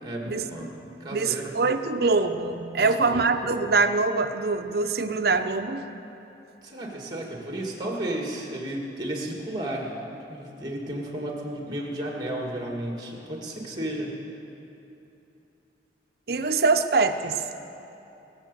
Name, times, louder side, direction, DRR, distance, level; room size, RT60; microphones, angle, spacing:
voice 1, 0.0-0.7 1.0-1.5 2.8-3.5 6.6-9.9 10.3-14.2, right 1 dB, 25° right, 0 dB, 1.9 m, -33 dB
voice 2, 1.1-5.9 16.3-17.6, right 4 dB, 60° right, 7 dB, 0.7 m, -24 dB
21.0 x 7.2 x 6.8 m, 2.9 s
head